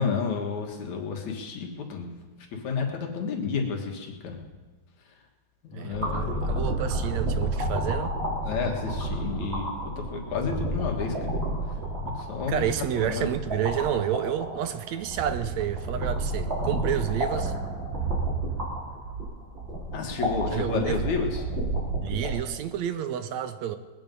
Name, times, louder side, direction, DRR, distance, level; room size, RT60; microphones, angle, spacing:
voice 1, 0.0-2.1 2.5-4.4 5.7-6.5 8.4-9.7 10.1-11.3 12.0-12.7 13.0-13.2 19.9-21.4, left 5 dB, 75° left, 2 dB, 3.1 m, -31 dB
voice 2, 5.7-8.2 12.5-17.5 20.5-21.0 22.0-23.8, right 10 dB, 75° right, 10 dB, 1.9 m, -30 dB
sound 1, 5.9-22.3, right 1 dB, 20° right, 3.8 m, -31 dB
21.0 x 9.2 x 5.3 m, 1.3 s
omnidirectional pair, 3.3 m